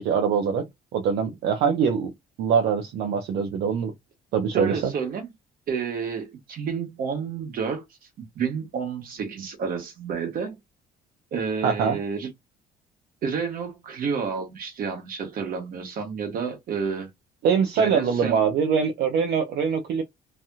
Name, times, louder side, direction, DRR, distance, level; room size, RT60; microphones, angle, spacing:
voice 1, 0.0-2.1 2.4-3.9 4.3-4.9 11.6-12.0 17.4-20.0, right 6 dB, 75° right, 0.7 m, -23 dB
voice 2, 4.5-5.3 5.7-7.8 8.2-10.6 11.3-12.3 13.2-17.1 17.7-18.4, right 6 dB, 60° right, 1.5 m, -30 dB
3.3 x 2.7 x 2.3 m
cardioid pair, 110°, 17 cm